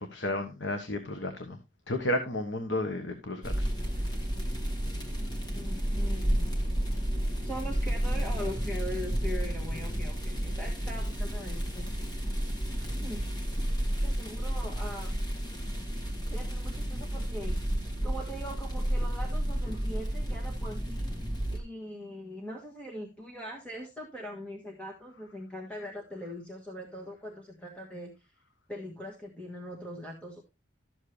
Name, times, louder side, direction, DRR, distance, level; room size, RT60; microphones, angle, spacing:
voice 1, 0.0-1.6 1.9-3.7, left 1 dB, 75° left, 7 dB, 1.3 m, -32 dB
sound 1, 3.4-21.6, equal, 20° left, 1.9 m, -31 dB
voice 2, 5.5-6.5 7.2-12.3 13.0-13.2 14.0-15.2 16.3-17.6 18.0-21.2 21.5-28.3 28.7-30.4, equal, 5° left, 0 dB, 1.6 m, -41 dB
12.5 x 7.5 x 3.3 m, 0.25 s
head